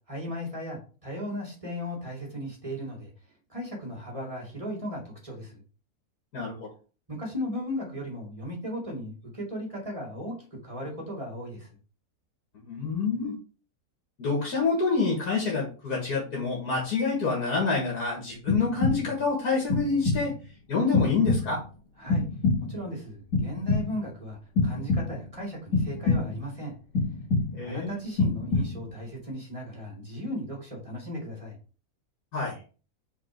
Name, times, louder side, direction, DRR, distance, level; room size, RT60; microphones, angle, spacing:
voice 1, 0.1-3.1 3.5-5.6 7.1-11.7 22.0-22.3 22.7-26.7 27.6-31.6, equal, 20° right, -2 dB, 2.5 m, -36 dB
voice 2, 6.3-6.7 12.6-13.3 14.2-20.3 20.7-21.6 27.5-28.0 32.3-32.6, left 4 dB, 75° left, -1 dB, 2.2 m, -27 dB
sound 1, 18.5-19.3 19.7-20.4 20.9-21.7 22.1-22.9 23.3-24.1 24.6-25.3 25.7-26.5 26.9-27.8 28.2-29.0, left 3 dB, 55° left, 2.7 m, -27 dB
5.1 x 4.3 x 4.6 m, 0.36 s
omnidirectional pair, 1.7 m